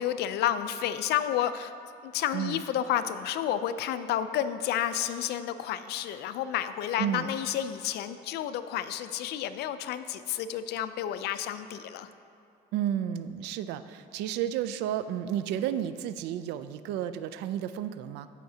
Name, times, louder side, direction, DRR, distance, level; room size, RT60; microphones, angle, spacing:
voice 1, 0.0-1.7 2.0-12.1, left 11 dB, 75° left, 12 dB, 0.5 m, -30 dB
voice 2, 7.0-7.3 12.7-18.3, right 10 dB, 90° right, 12 dB, 0.4 m, -32 dB
15.0 x 5.7 x 2.8 m, 2.5 s
cardioid pair, 110°, 17 cm